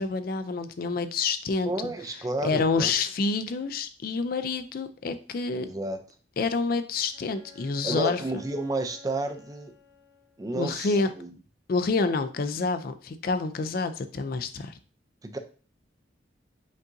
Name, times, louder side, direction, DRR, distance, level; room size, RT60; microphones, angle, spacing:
voice 1, 0.0-1.7 2.4-5.7 6.4-8.2 10.5-11.1 11.7-14.7, left 4 dB, 50° left, 9 dB, 0.4 m, -28 dB
voice 2, 1.6-2.9 5.6-6.0 7.8-9.7 10.4-11.3 15.2-15.4, right 2 dB, 20° right, 7 dB, 0.4 m, -31 dB
Bowed string instrument, 7.1-10.6, left 5 dB, 50° right, 1.4 m, -53 dB
5.2 x 2.6 x 3.8 m, 0.39 s
head